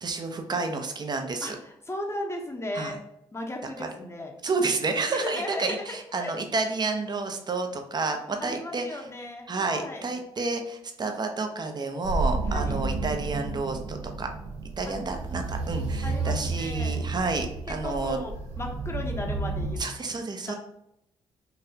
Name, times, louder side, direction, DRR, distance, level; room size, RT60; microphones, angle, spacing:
voice 1, 0.0-1.5 2.7-3.0 3.8-3.9 4.4-9.0 9.5-14.3 14.8-18.2 19.8-20.5, right 3 dB, 35° right, 5 dB, 0.7 m, -30 dB
voice 2, 1.4-3.0 3.3-4.3 5.1-6.3 8.0-8.1 8.4-10.1 12.5-12.8 14.8-15.0 16.0-17.1 17.7-19.8 20.5-20.6, left 1 dB, 20° left, 2 dB, 0.9 m, -36 dB
sound 1, 12.0-19.8, right 3 dB, 80° right, 0.6 m, -31 dB
3.9 x 2.6 x 2.7 m, 0.79 s
supercardioid pair, 60°, 12 cm